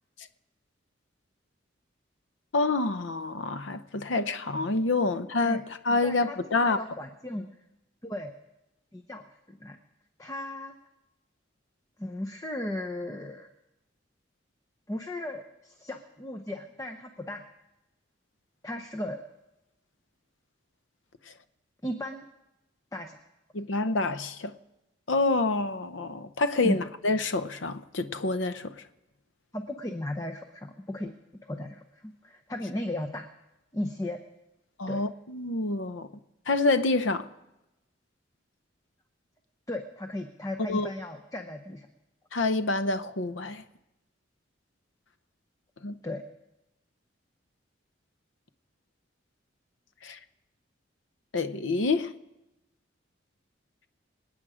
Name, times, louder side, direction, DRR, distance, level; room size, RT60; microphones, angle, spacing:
voice 1, 2.5-6.8 23.5-24.5 25.1-28.7 34.8-36.1 36.5-37.3 40.6-40.9 42.3-43.6 45.8-45.9 50.0-50.2 51.3-52.1, left 3 dB, 80° left, 0.8 m, -27 dB
voice 2, 6.0-6.4 6.6-7.5 8.0-8.3 8.9-9.8 10.2-10.8 12.0-13.5 14.9-17.4 18.6-19.2 21.8-22.2 22.9-23.2 26.6-26.8 29.5-31.1 31.5-33.3 33.7-34.2 34.9-35.0 39.7-41.9 46.0-46.2, left 1 dB, 15° left, 0.8 m, -36 dB
26.5 x 8.9 x 4.9 m
head